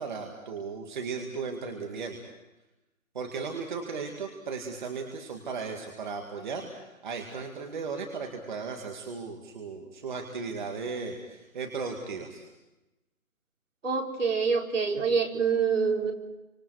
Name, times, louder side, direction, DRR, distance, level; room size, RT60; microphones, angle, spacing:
voice 1, 0.0-2.2 3.1-6.7 7.0-12.4, right 5 dB, 35° right, 2 dB, 2.0 m, -36 dB
voice 2, 13.8-16.1, right 5 dB, 65° right, 0 dB, 4.3 m, -26 dB
29.5 x 26.0 x 4.8 m, 0.98 s
hypercardioid pair, 170°, 41 cm